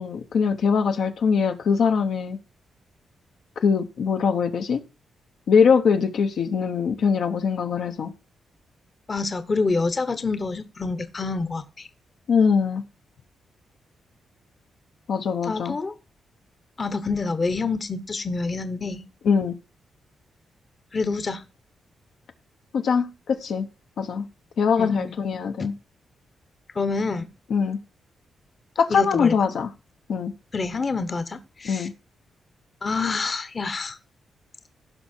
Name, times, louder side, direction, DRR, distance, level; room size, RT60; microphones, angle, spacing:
voice 1, 0.0-2.4 3.6-4.8 5.5-8.1 12.3-12.8 15.1-15.8 19.2-19.6 22.7-23.7 24.0-24.2 24.6-25.7 27.5-27.8 28.8-29.7 30.1-30.3 31.6-31.9, left 6 dB, 70° left, 1.0 m, -22 dB
voice 2, 9.1-11.9 15.5-15.9 16.8-19.0 20.9-21.4 24.8-25.1 26.7-27.3 28.9-29.3 30.5-31.9 32.8-34.0, left 3 dB, 35° left, 1.0 m, -27 dB
15.5 x 5.7 x 4.4 m
cardioid pair, 105°, 0 cm